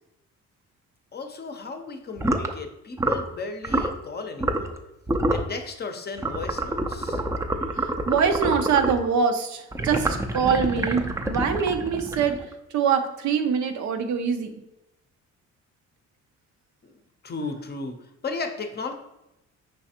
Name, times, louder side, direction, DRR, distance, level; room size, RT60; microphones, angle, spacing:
voice 1, 1.1-4.8 5.3-7.2 16.8-17.0 17.2-18.9, left 4 dB, 35° left, 5 dB, 0.6 m, -35 dB
sound 1, 2.2-2.5 3.0-3.3 3.6-3.9 4.4-4.8 5.1-5.5 6.2-9.1 9.7-12.5, right 1 dB, 10° right, 0.4 m, -27 dB
voice 2, 7.8-14.5, right 6 dB, 70° right, 7 dB, 0.6 m, -24 dB
5.3 x 3.2 x 2.8 m, 0.92 s
cardioid pair, 90°, 30 cm